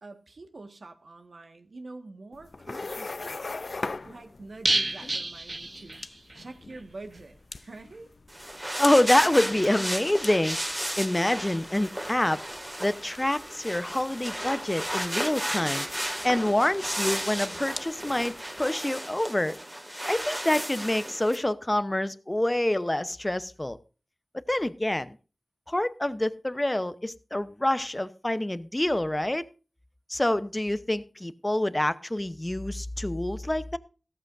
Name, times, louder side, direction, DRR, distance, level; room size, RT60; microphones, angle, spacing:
voice 1, 0.0-3.5 4.0-6.0 6.3-8.1, right 2 dB, 75° right, 6 dB, 1.6 m, -46 dB
sound 1, 2.3-18.6, left 3 dB, 65° left, 0.5 m, -43 dB
sound 2, 4.6-6.4 6.7-6.8 7.1-7.2, right 2 dB, 45° right, 0.9 m, -29 dB
sound 3, 8.3-21.4, equal, 10° right, 2.1 m, -34 dB
voice 2, 8.8-10.6 11.0-12.4 12.8-15.9 16.2-19.6 20.1-23.8 24.5-25.2 25.7-29.4 30.1-33.8, left 1 dB, 20° left, 13 dB, 0.8 m, -26 dB
14.5 x 13.5 x 2.6 m, 0.35 s
wide cardioid pair, 55°, 0 cm